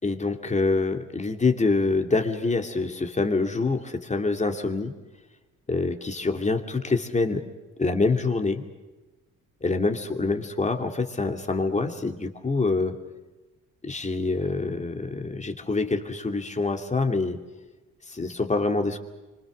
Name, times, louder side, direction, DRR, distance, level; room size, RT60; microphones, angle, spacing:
voice 1, 0.0-4.9 5.7-7.4 7.8-8.7 9.6-13.0 13.8-17.4 18.1-19.0, left 3 dB, 25° left, 5 dB, 2.7 m, -26 dB
26.5 x 25.0 x 6.4 m, 1.2 s
cardioid pair, 90°, 30 cm